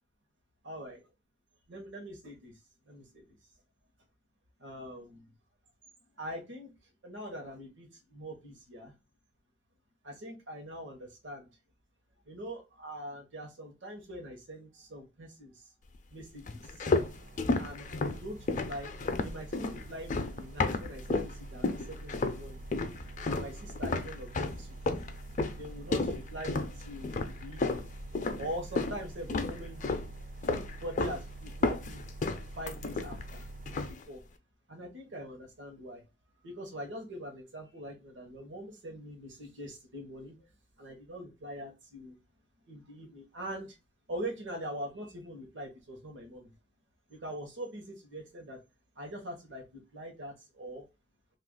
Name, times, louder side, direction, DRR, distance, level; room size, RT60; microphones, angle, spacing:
voice 1, 0.6-1.0 1.7-2.5 2.9-3.4 4.6-5.3 6.1-6.7 7.0-8.9 10.0-11.5 12.2-15.7 16.1-16.9 17.6-18.9 19.2-22.6 23.3-24.8 25.6-27.9 28.4-30.0 30.5-32.0 32.6-33.4 33.9-34.2 34.7-36.0 36.4-40.4 40.8-42.2 42.7-43.8 44.1-46.5 47.1-48.6 49.0-50.8, equal, 70° right, 0.9 m, -43 dB
sound 1, 16.5-21.3 21.6-22.4 22.7-29.0 29.3-30.1 30.4-31.2 31.5-33.3 33.7-34.0, left 3 dB, 40° left, 0.4 m, -32 dB
sound 2, 17.0-33.9, right 2 dB, 45° right, 0.3 m, -46 dB
2.8 x 2.4 x 3.7 m
head